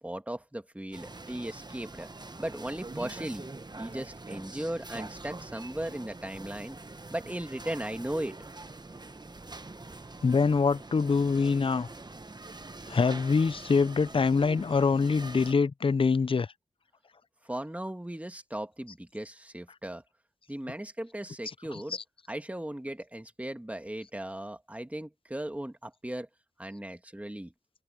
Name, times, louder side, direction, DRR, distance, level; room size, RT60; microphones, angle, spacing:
voice 1, 0.0-2.1 2.4-3.5 3.8-6.8 7.1-8.3 17.4-20.0 20.5-22.0 22.3-26.3 26.6-27.5, right 1 dB, 10° right, 1.8 m, -37 dB
sound 1, 0.9-15.5, right 2 dB, 25° right, 1.0 m, -44 dB
voice 2, 10.2-11.9 12.9-16.5 21.7-22.0, left 4 dB, 35° left, 0.4 m, -25 dB
wide cardioid pair, 70°, 15 cm